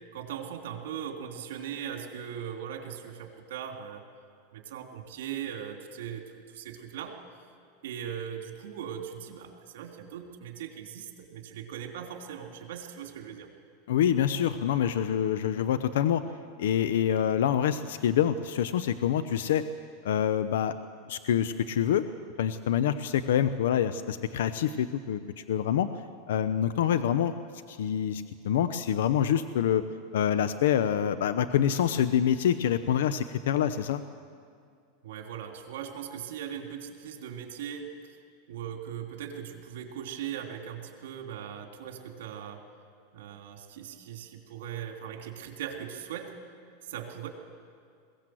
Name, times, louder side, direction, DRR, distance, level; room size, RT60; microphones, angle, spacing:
voice 1, 0.1-4.0 4.5-7.2 7.8-13.5 35.0-38.2 38.5-42.6 43.1-46.3 46.8-47.3, right 9 dB, 80° right, 3 dB, 2.9 m, -39 dB
voice 2, 13.9-16.2 16.6-19.6 20.0-20.7 21.1-22.0 22.4-25.2 25.5-25.9 26.3-27.3 27.7-29.8 30.1-34.0, left 9 dB, 85° left, 12 dB, 0.7 m, -26 dB
22.0 x 17.0 x 7.8 m, 2.3 s
supercardioid pair, 140°, 0 cm